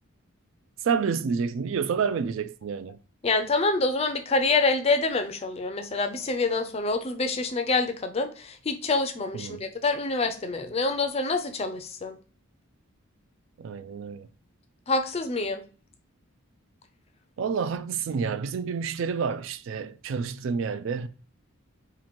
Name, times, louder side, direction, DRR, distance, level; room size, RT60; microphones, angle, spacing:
voice 1, 0.8-3.0 9.3-9.6 13.6-14.3 17.4-21.1, right 6 dB, 60° right, 0.3 m, -29 dB
voice 2, 3.2-12.2 14.9-15.6, left 3 dB, 30° left, 0.4 m, -26 dB
2.9 x 2.6 x 4.1 m
head